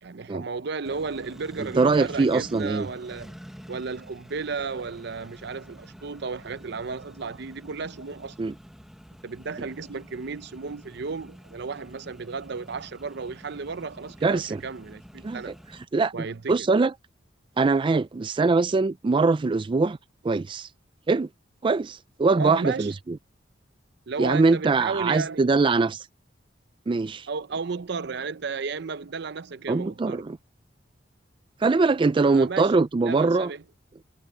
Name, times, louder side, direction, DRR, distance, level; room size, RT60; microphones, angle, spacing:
voice 1, 0.0-3.3 3.7-8.4 9.2-15.6 16.1-16.7 22.4-22.9 24.1-25.5 27.3-30.2 32.2-32.7 33.0-33.6, right 4 dB, 60° right, 0.6 m, -34 dB
Accelerating revving vroom, 0.8-15.8, equal, ahead, 1.2 m, -47 dB
voice 2, 1.8-2.9 8.4-8.5 14.2-14.6 15.2-15.4 15.9-16.9 17.6-20.0 20.2-20.7 21.1-21.3 21.6-23.2 24.2-26.1 26.9-27.3 29.7-30.4 31.6-33.5, right 3 dB, 25° right, 0.3 m, -22 dB
head